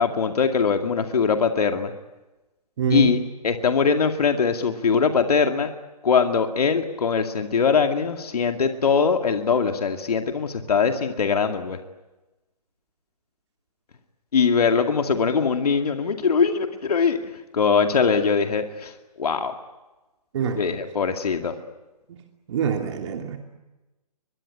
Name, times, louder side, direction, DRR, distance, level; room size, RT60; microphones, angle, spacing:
voice 1, 0.0-1.9 2.9-5.7 6.0-11.8 14.3-17.2 17.5-18.9 19.2-19.5 20.6-21.5, left 5 dB, 70° left, 5 dB, 2.3 m, -21 dB
voice 2, 2.8-3.1 20.3-20.6 22.1-22.2 22.5-23.4, right 7 dB, 45° right, 3 dB, 2.8 m, -25 dB
23.0 x 23.0 x 9.8 m, 1.1 s
hypercardioid pair, 145°, 20 cm